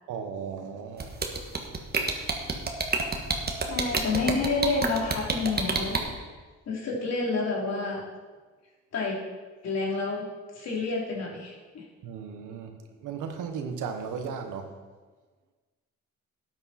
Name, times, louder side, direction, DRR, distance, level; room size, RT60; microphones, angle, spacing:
voice 1, 0.1-1.1 12.0-12.7 13.0-14.7, right 6 dB, 85° right, 5 dB, 1.4 m, -35 dB
sound 1, 1.0-6.0, right 4 dB, 30° right, 1.6 m, -27 dB
voice 2, 3.7-6.1 6.7-8.0 8.9-9.2 9.6-10.3 10.5-11.8, left 3 dB, 60° left, -3 dB, 3.3 m, -29 dB
12.5 x 8.8 x 4.3 m, 1.4 s
cardioid pair, 90°, 30 cm